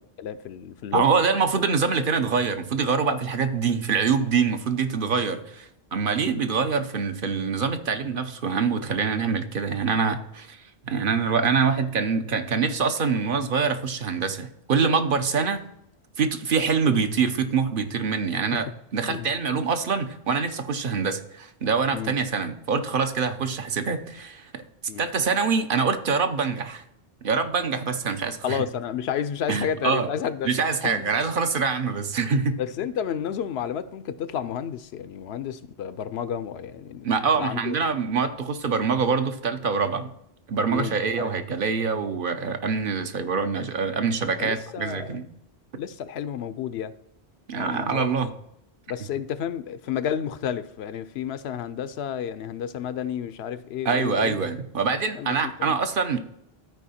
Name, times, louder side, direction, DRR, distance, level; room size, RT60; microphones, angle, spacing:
voice 1, 0.2-1.0 19.1-19.3 20.9-21.0 21.9-22.2 24.9-25.1 28.4-30.5 30.8-31.1 32.6-37.8 40.7-41.3 44.4-45.2 45.8-46.9 47.6-48.1 48.9-54.4 55.2-55.8, left 9 dB, 85° left, 0.8 m, -31 dB
voice 2, 0.9-15.6 16.2-24.6 25.0-26.8 27.2-28.6 29.5-30.1 30.4-32.6 37.0-40.1 40.5-45.2 47.5-48.3 53.8-56.2, right 5 dB, 60° right, 0.9 m, -25 dB
13.0 x 4.6 x 4.2 m
omnidirectional pair, 1.0 m